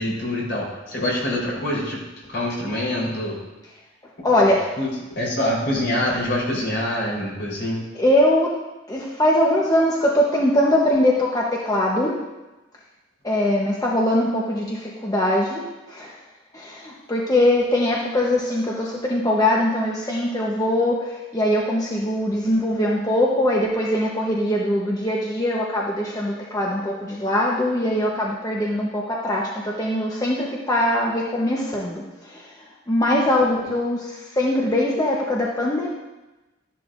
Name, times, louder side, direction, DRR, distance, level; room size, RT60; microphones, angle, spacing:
voice 1, 0.0-2.0 2.3-3.4 4.3-4.4 4.8-4.9 5.2-7.8 33.6-33.7, left 1 dB, 65° left, -4 dB, 4.0 m, -25 dB
voice 2, 4.2-4.6 8.0-8.5 8.9-12.2 13.2-16.2 16.5-32.4 32.9-35.9, left 1 dB, 20° left, -3 dB, 1.0 m, -22 dB
13.0 x 10.5 x 2.6 m, 1.1 s
head